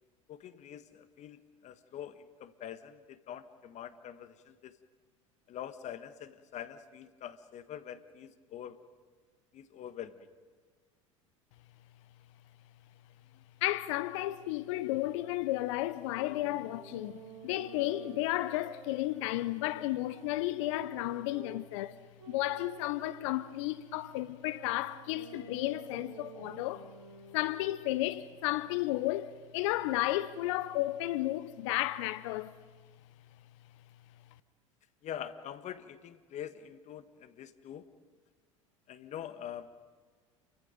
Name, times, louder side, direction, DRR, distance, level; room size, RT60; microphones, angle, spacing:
voice 1, 0.3-4.8 5.5-8.8 9.5-10.3 35.0-37.9 38.9-39.7, left 10 dB, 45° left, 1.5 m, -45 dB
voice 2, 13.6-22.0 22.3-26.8 27.3-32.5, left 16 dB, 65° left, 0.8 m, -33 dB
sound 1, 16.1-21.6 22.2-27.5, right 4 dB, 85° right, 2.6 m, -51 dB
29.0 x 24.0 x 5.3 m
hypercardioid pair, 80°, 17 cm